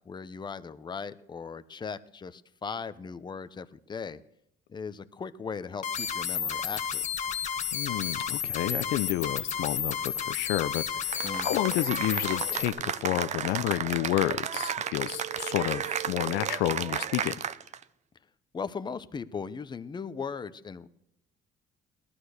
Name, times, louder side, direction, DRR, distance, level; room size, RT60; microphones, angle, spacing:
voice 1, 0.1-4.2 4.7-7.1 11.2-11.6 18.5-20.9, left 5 dB, 25° left, 0.9 m, -38 dB
sound 1, 5.8-12.7, left 7 dB, 45° left, 1.4 m, -32 dB
voice 2, 7.7-17.3, left 15 dB, 85° left, 0.7 m, -30 dB
Cheering / Applause, 11.1-17.8, right 8 dB, 45° right, 0.7 m, -33 dB
18.0 x 11.5 x 6.5 m
cardioid pair, 110°, 17 cm